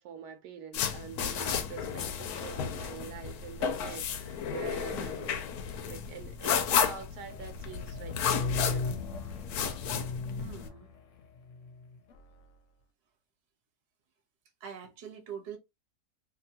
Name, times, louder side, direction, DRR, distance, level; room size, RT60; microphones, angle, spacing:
voice 1, 0.0-5.4 5.8-9.0, right 6 dB, 80° right, 1.2 m, -45 dB
sound 1, 0.7-10.7, left 7 dB, 90° left, 1.1 m, -33 dB
voice 2, 4.9-5.3 10.4-10.9 14.6-15.6, right 8 dB, 50° right, 1.0 m, -44 dB
sound 2, 7.3-12.2, left 3 dB, 65° left, 0.9 m, -37 dB
2.7 x 2.7 x 2.7 m
omnidirectional pair, 1.6 m